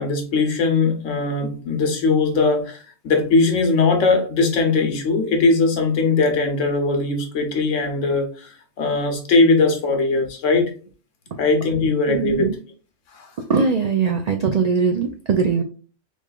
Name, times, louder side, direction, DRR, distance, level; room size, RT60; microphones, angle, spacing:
voice 1, 0.0-8.5 8.8-10.7 11.4-12.5 13.1-13.3, left 3 dB, 90° left, 4 dB, 1.2 m, -20 dB
voice 2, 12.1-12.5 13.5-15.6, right 5 dB, 80° right, 4 dB, 0.3 m, -20 dB
3.5 x 3.2 x 2.3 m, 0.38 s
omnidirectional pair, 1.2 m